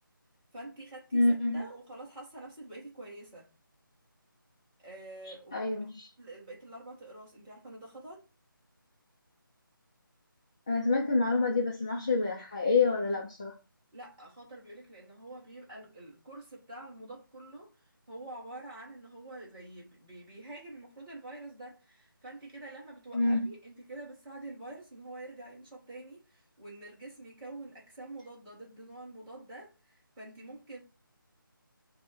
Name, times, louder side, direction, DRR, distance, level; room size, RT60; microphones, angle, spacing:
voice 1, 0.5-3.5 4.8-5.8 6.2-8.2 13.9-30.8, right 2 dB, 15° right, 1.5 m, -47 dB
voice 2, 1.1-1.6 5.5-6.1 10.7-13.5 23.1-23.5, left 3 dB, 15° left, 0.3 m, -27 dB
5.3 x 2.1 x 4.3 m
figure-of-eight pair, 160°, 12 cm